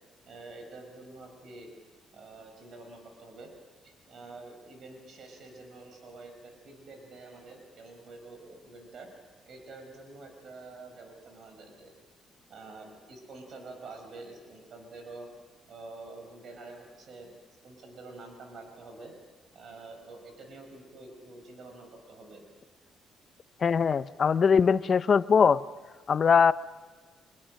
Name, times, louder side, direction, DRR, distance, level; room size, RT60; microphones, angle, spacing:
voice 1, 0.3-1.7 2.1-3.5 3.8-9.1 9.5-11.9 12.5-15.3 15.7-17.3 17.6-19.1 19.5-22.4, right 3 dB, 60° right, 4 dB, 5.4 m, -47 dB
voice 2, 23.6-25.6 26.1-26.5, left 6 dB, 45° left, 16 dB, 0.6 m, -21 dB
24.5 x 22.0 x 6.4 m, 1.4 s
cardioid pair, 90°, 0 cm